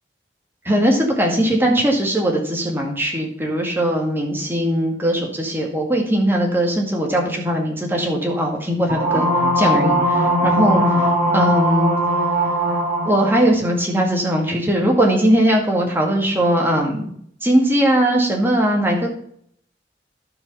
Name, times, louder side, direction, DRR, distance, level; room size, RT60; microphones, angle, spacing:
voice 1, 0.6-9.3 9.6-11.9 13.0-17.0 17.4-19.1, equal, 15° right, 0 dB, 2.1 m, -19 dB
sound 1, 8.9-13.4, equal, 35° right, 3.7 m, -19 dB
11.5 x 5.5 x 5.7 m, 0.66 s
head